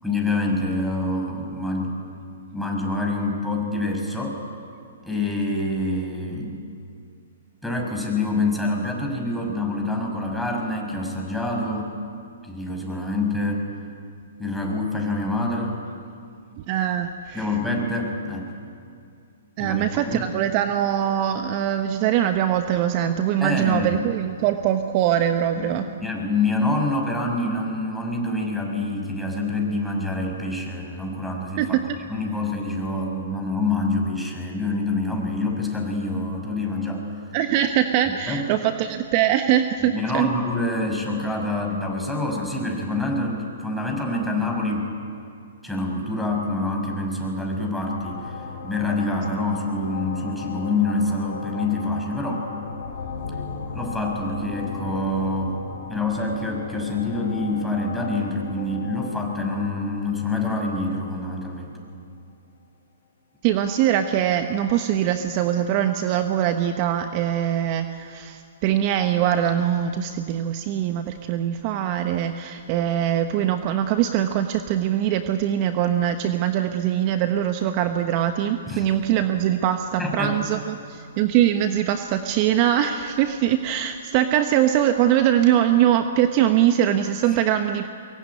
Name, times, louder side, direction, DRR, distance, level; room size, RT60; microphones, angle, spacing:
voice 1, 0.0-2.0 2.5-4.4 5.0-6.6 7.6-12.0 12.4-13.7 14.4-15.8 17.3-18.5 19.6-20.3 23.4-24.0 25.6-25.7 26.0-31.8 32.1-37.1 38.3-38.5 39.8-44.9 45.6-52.4 53.7-55.6 55.9-61.7 78.7-78.9 80.0-80.4 87.3-87.4, left 2 dB, ahead, 0 dB, 5.9 m, -26 dB
voice 2, 16.6-17.5 19.6-25.9 31.6-31.8 37.3-40.3 63.4-87.9, right 11 dB, 40° right, 7 dB, 1.2 m, -22 dB
sound 1, 47.8-61.9, left 5 dB, 55° left, 6.0 m, -37 dB
23.5 x 22.5 x 9.8 m, 2.4 s
hypercardioid pair, 125°, 0 cm